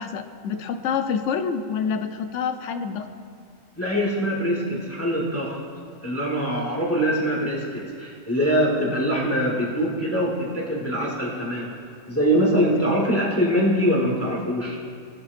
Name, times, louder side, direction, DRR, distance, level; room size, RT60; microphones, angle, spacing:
voice 1, 0.0-3.1, left 6 dB, 70° left, 8 dB, 0.9 m, -27 dB
voice 2, 3.8-5.6 6.0-11.7 12.1-14.8, equal, 10° left, -3 dB, 1.3 m, -23 dB
17.5 x 6.9 x 2.6 m, 2.2 s
omnidirectional pair, 1.3 m